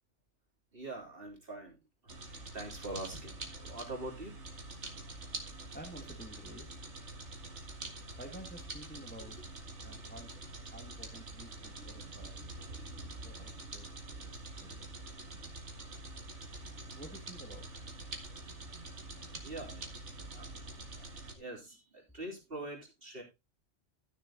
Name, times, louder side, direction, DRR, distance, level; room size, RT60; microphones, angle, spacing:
voice 1, 0.7-1.7 2.0-2.1 2.5-4.3 19.4-19.9 20.3-21.1 21.3-23.2, right 2 dB, 50° right, 0 dB, 3.6 m, -44 dB
sound 1, 2.1-21.3, right 2 dB, 65° right, 2.3 m, -46 dB
voice 2, 5.7-6.7 8.2-9.4 9.8-10.3 10.7-12.3 13.2-13.9 14.2-14.7 16.9-17.7, right 1 dB, 10° left, 3 dB, 1.8 m, -50 dB
13.0 x 6.8 x 3.8 m, 0.23 s
omnidirectional pair, 1.3 m